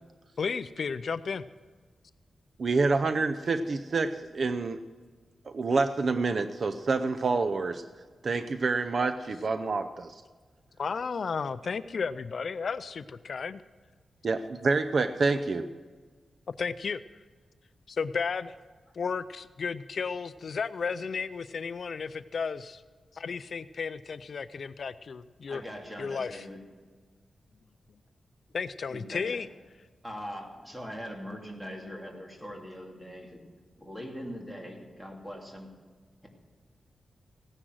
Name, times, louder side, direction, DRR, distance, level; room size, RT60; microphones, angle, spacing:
voice 1, 0.4-1.4 10.8-13.6 16.5-17.0 17.9-18.6 18.9-22.8 23.1-25.6 26.0-26.5 28.5-29.5, left 5 dB, 55° left, 14 dB, 0.4 m, -33 dB
voice 2, 2.6-4.8 5.5-7.8 8.2-10.1 14.2-15.7, right 3 dB, 50° right, 9 dB, 0.5 m, -27 dB
voice 3, 25.5-26.6 28.9-29.4 30.0-33.4 33.8-35.7, equal, 5° right, 0 dB, 2.6 m, -41 dB
16.5 x 10.0 x 6.3 m, 1.4 s
wide cardioid pair, 140°, 0 cm